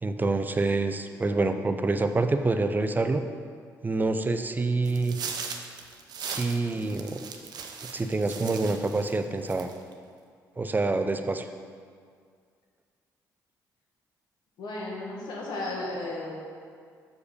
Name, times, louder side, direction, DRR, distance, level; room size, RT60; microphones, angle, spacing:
voice 1, 0.0-3.2 3.8-5.2 6.2-7.2 7.9-9.7 10.6-11.5, right 3 dB, 25° right, 8 dB, 0.5 m, -26 dB
sound 1, 4.8-9.2 9.5-9.9, right 6 dB, 65° right, 0.7 m, -38 dB
voice 2, 14.6-16.3, left 2 dB, 75° left, -3 dB, 1.7 m, -34 dB
6.7 x 4.8 x 5.1 m, 2.1 s
supercardioid pair, 65°, 8 cm